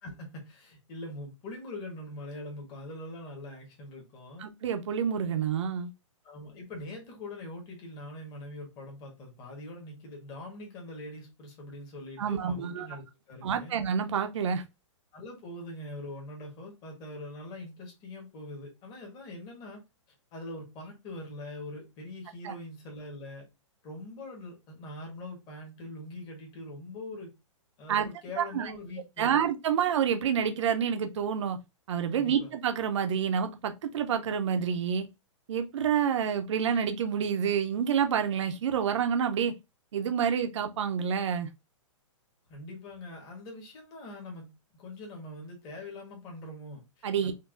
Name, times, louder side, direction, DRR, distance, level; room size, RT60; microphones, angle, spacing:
voice 1, 0.0-4.5 6.2-13.8 15.1-19.8 20.3-23.4 23.8-27.3 27.8-29.4 32.2-32.5 42.5-47.3, left 1 dB, 25° left, 1.3 m, -43 dB
voice 2, 4.4-5.9 12.2-13.0 13.4-14.6 22.4-22.5 27.9-28.1 28.4-28.7 29.2-31.6 31.9-35.1 35.5-39.5 39.9-41.5 47.0-47.3, right 7 dB, 65° right, 0.6 m, -28 dB
4.6 x 2.6 x 2.5 m
hypercardioid pair, 160°, 16 cm